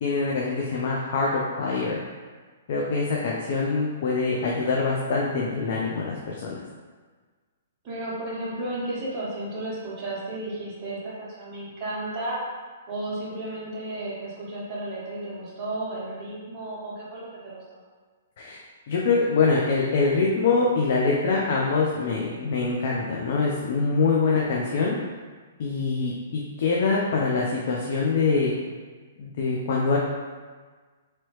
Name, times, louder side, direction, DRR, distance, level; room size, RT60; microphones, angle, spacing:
voice 1, 0.0-2.0 2.7-6.6 18.4-18.6 18.9-25.0 25.6-28.5 29.2-30.0, left 4 dB, 50° left, -3 dB, 0.5 m, -24 dB
voice 2, 7.8-12.4 12.9-17.6, right 1 dB, 25° right, -8 dB, 1.0 m, -33 dB
3.1 x 2.9 x 3.0 m, 1.5 s
hypercardioid pair, 155°, 0 cm